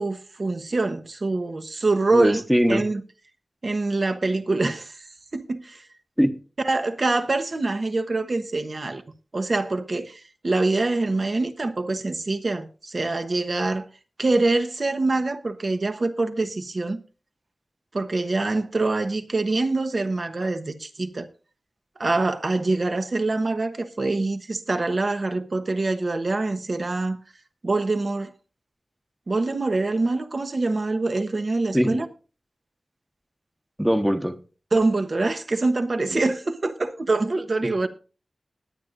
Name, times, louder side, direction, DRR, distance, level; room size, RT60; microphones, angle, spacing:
voice 1, 0.0-2.4 2.7-3.0 3.6-5.1 5.3-5.8 6.6-9.0 9.3-13.9 14.2-17.0 17.9-21.3 22.0-27.2 27.6-28.3 29.3-32.1 34.7-37.9, right 2 dB, 55° right, 1.2 m, -25 dB
voice 2, 2.1-2.8 6.2-6.3 31.7-32.0 33.8-34.4, equal, 5° right, 1.1 m, -21 dB
20.5 x 8.8 x 2.6 m
cardioid pair, 55°, 0 cm